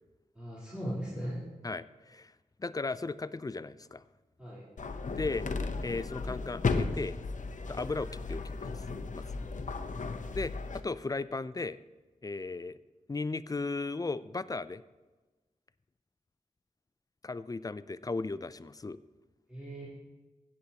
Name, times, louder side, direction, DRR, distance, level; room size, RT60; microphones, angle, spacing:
voice 1, 0.4-1.5 4.4-4.6 9.4-9.6 19.5-19.9, equal, 5° right, -10 dB, 3.5 m, -38 dB
voice 2, 1.6-2.3 2.6-4.0 5.2-5.5 5.8-7.1 7.7-8.8 9.1-9.2 10.3-11.8 12.2-12.8 13.1-14.8 17.2-19.0, left 3 dB, 25° left, 15 dB, 0.4 m, -36 dB
sound 1, 4.8-10.8, left 4 dB, 60° left, 0.7 m, -35 dB
16.5 x 8.2 x 2.9 m, 1.2 s
cardioid pair, 50°, 14 cm